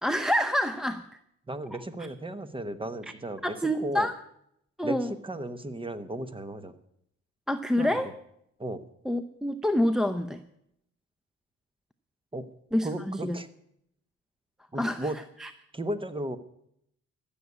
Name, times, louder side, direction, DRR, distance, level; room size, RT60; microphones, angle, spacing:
voice 1, 0.0-1.0 3.4-4.1 4.8-5.1 7.5-8.1 9.1-10.4 12.7-13.4 14.8-15.1 15.4-15.5, left 1 dB, ahead, 7 dB, 0.7 m, -27 dB
voice 2, 1.5-4.1 4.8-6.7 7.8-8.0 8.6-8.8 12.3-12.4 12.8-13.5 14.7-15.2 15.7-16.4, right 1 dB, 15° right, 12 dB, 1.1 m, -35 dB
14.5 x 7.1 x 9.6 m, 0.75 s
cardioid pair, 90°, 30 cm